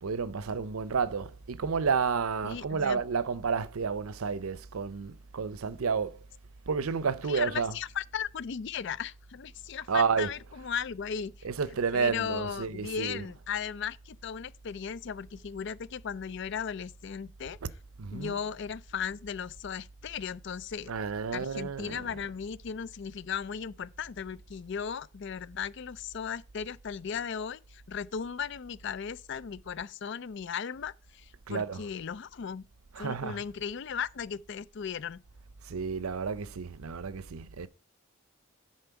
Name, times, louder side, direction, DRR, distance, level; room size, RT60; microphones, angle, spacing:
voice 1, 0.0-6.2 6.7-7.8 9.9-10.6 11.4-13.4 17.6-17.7 18.0-18.4 20.9-22.2 31.5-31.9 32.9-33.4 35.6-37.7, right 5 dB, 90° right, 0.6 m, -31 dB
voice 2, 2.4-3.0 7.3-11.5 11.9-17.6 18.1-20.9 21.3-32.6 33.0-35.2, left 7 dB, 55° left, 0.4 m, -36 dB
10.5 x 4.4 x 4.6 m
head